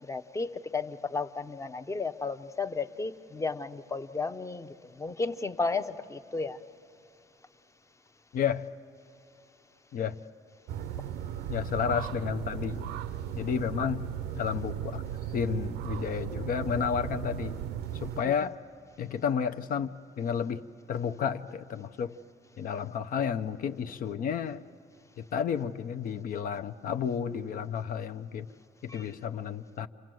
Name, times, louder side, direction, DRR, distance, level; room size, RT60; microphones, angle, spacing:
voice 1, 0.0-6.6 18.2-18.5 28.9-29.1, left 4 dB, 15° left, 10 dB, 0.7 m, -34 dB
voice 2, 8.3-8.7 9.9-10.2 11.5-12.9 13.3-14.1 14.3-15.0 15.3-17.6 18.0-18.6 19.0-19.9 20.2-20.6 20.9-22.1 22.6-24.6 25.2-28.5 28.8-29.9, left 7 dB, 55° left, 8 dB, 0.7 m, -31 dB
sound 1, 10.7-18.2, right 10 dB, 85° right, 0.7 m, -36 dB
29.5 x 26.0 x 7.7 m, 2.9 s
cardioid pair, 110°, 17 cm